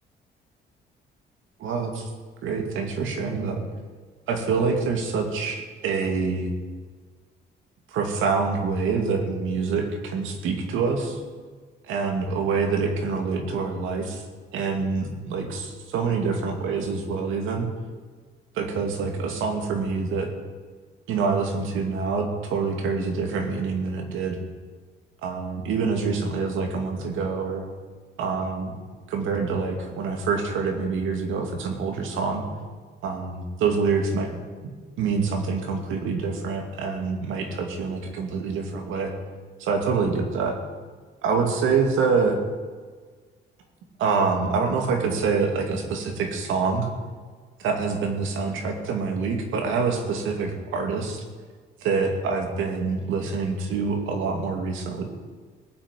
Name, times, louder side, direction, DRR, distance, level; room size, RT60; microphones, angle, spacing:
voice 1, 1.6-2.1 2.4-3.6 4.3-6.5 7.9-11.2 11.8-14.2 14.5-17.7 18.5-20.3 21.1-24.4 25.2-27.7 28.2-28.7 29.1-32.4 33.0-34.3 35.0-39.1 39.6-40.6 41.2-42.4 44.0-46.9 47.6-51.2 51.8-55.0, right 4 dB, 85° right, 3 dB, 2.4 m, -26 dB
18.5 x 6.2 x 9.2 m, 1.5 s
cardioid pair, 90°, 20 cm